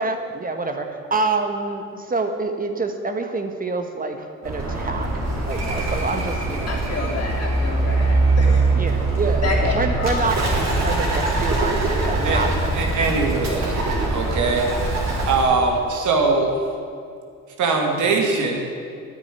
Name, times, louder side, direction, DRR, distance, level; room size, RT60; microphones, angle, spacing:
voice 1, 0.0-5.1 5.4-6.8 7.6-8.3 8.7-12.7 13.1-13.2, right 3 dB, 30° right, 5 dB, 1.3 m, -27 dB
Bird, 4.4-15.4, right 2 dB, 60° right, 3.9 m, -22 dB
voice 2, 6.7-8.7 9.4-10.3, left 3 dB, 55° left, -1 dB, 3.3 m, -29 dB
voice 3, 12.7-14.7 15.3-16.6 17.6-18.6, right 3 dB, 75° right, 1 dB, 2.3 m, -21 dB
9.9 x 9.0 x 9.9 m, 2.3 s
cardioid pair, 90°, 30 cm